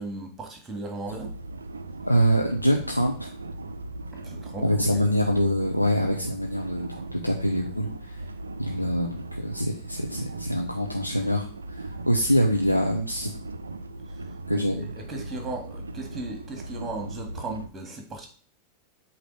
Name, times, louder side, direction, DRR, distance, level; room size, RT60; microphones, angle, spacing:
voice 1, 0.0-1.3 4.1-5.1 14.1-18.3, right 2 dB, 15° right, 3 dB, 1.9 m, -37 dB
sound 1, 1.1-17.7, right 2 dB, 75° right, 0.4 m, -38 dB
voice 2, 2.0-3.3 4.6-8.2 8.6-11.5 12.1-13.3 14.5-14.9, equal, 90° left, 1 dB, 0.7 m, -24 dB
8.1 x 2.9 x 5.2 m, 0.43 s
figure-of-eight pair, 90°, 0 cm